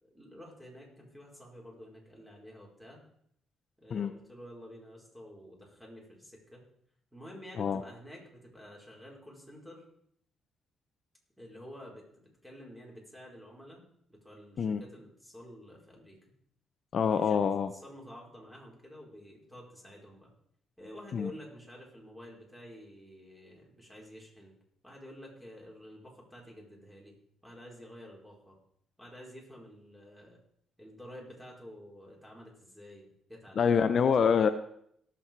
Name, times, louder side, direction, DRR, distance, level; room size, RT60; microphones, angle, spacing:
voice 1, 0.0-3.0 3.8-6.6 7.1-9.8 11.4-13.8 14.1-16.2 17.0-17.4 17.7-20.3 20.8-24.5 24.8-27.1 27.4-28.6 29.0-30.4 30.8-34.1, equal, 5° right, -2 dB, 4.8 m, -50 dB
voice 2, 16.9-17.7 21.1-21.3 33.6-34.5, left 6 dB, 55° left, 9 dB, 0.7 m, -26 dB
18.0 x 7.5 x 4.6 m, 0.69 s
cardioid pair, 90°, 0 cm